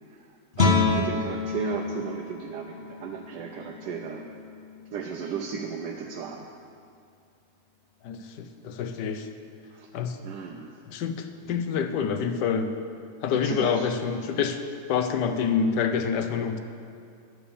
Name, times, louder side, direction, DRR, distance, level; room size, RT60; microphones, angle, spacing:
voice 1, 0.1-4.3 4.9-6.5 9.7-9.9 10.2-10.8 13.4-13.9, right 6 dB, 85° right, 1 dB, 1.3 m, -35 dB
Guitar, 0.5-6.1, left 4 dB, 45° left, 1.0 m, -29 dB
voice 2, 8.0-9.3 9.9-10.2 10.9-12.7 13.2-14.6 14.9-16.6, left 6 dB, 90° left, 8 dB, 1.4 m, -27 dB
10.0 x 6.9 x 6.9 m, 2.3 s
omnidirectional pair, 1.8 m